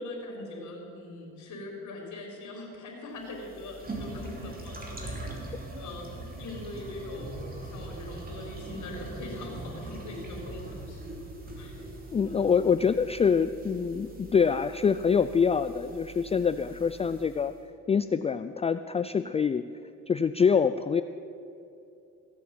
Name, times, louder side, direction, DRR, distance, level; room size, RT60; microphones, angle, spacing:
voice 1, 0.0-11.2 11.5-11.9, left 2 dB, 75° left, 0 dB, 4.2 m, -42 dB
sound 1, 3.2-17.5, right 2 dB, 30° right, 3.0 m, -42 dB
voice 2, 12.1-17.5 17.9-19.7 20.1-21.0, left 6 dB, 20° left, 12 dB, 0.3 m, -25 dB
16.5 x 8.4 x 7.3 m, 2.7 s
cardioid pair, 90°, 30 cm